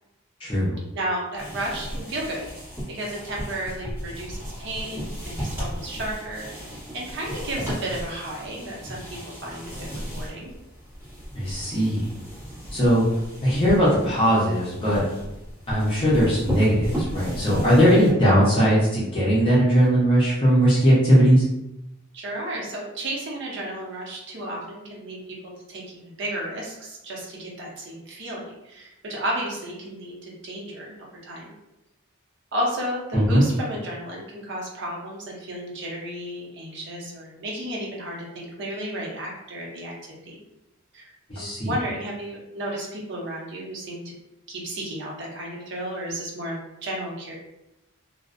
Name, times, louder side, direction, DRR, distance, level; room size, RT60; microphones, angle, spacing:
voice 1, 0.4-0.7 11.3-12.0 12.7-13.0 13.4-15.0 15.7-21.4 33.1-33.4 41.3-41.7, equal, 25° left, -8 dB, 0.6 m, -19 dB
voice 2, 0.9-10.5 22.1-31.5 32.5-40.4 40.9-44.1 44.5-47.3, right 1 dB, 55° right, -3 dB, 0.7 m, -33 dB
sound 1, 1.4-18.1, equal, 10° right, 1.2 m, -35 dB
2.5 x 2.0 x 2.4 m, 0.90 s
head